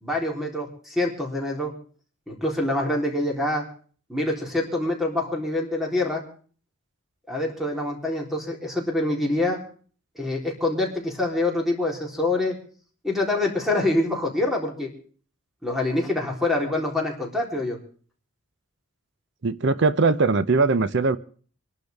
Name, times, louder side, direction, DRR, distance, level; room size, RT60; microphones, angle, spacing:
voice 1, 0.0-1.7 2.3-3.6 4.1-6.2 7.3-9.6 10.2-12.6 13.0-14.9 15.6-17.8, left 2 dB, ahead, 0 dB, 3.6 m, -25 dB
voice 2, 19.4-21.2, right 3 dB, 60° right, 14 dB, 0.7 m, -20 dB
25.5 x 12.0 x 3.5 m, 0.44 s
head